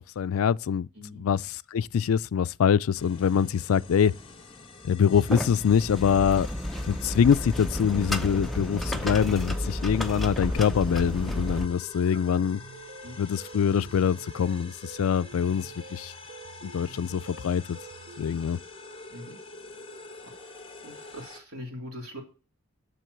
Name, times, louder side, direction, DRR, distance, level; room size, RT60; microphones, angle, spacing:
voice 1, 0.0-0.9 1.2-1.4 1.7-4.1 4.9-6.5 6.8-12.6 13.2-16.1 16.6-17.8 18.2-18.6, left 7 dB, 75° left, 0.3 m, -24 dB
sound 1, 3.0-21.4, left 3 dB, 25° left, 1.2 m, -46 dB
sound 2, 5.1-11.7, left 1 dB, ahead, 0.6 m, -31 dB
sound 3, 12.3-18.4, right 4 dB, 50° right, 0.5 m, -48 dB
voice 2, 20.8-22.2, equal, 90° right, 3.2 m, -41 dB
7.7 x 6.6 x 6.7 m
head